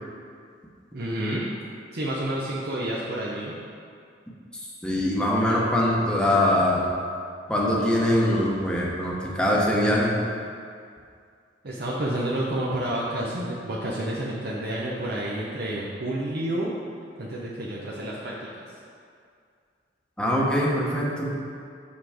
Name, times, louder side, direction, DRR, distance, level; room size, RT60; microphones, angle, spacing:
voice 1, 0.9-1.4 1.9-3.5 11.6-16.7 17.2-18.5, right 1 dB, 60° right, -5 dB, 0.8 m, -29 dB
voice 2, 4.8-6.8 7.5-10.2 20.2-21.3, left 1 dB, 5° left, -5 dB, 1.0 m, -23 dB
6.0 x 5.7 x 4.9 m, 2.3 s
head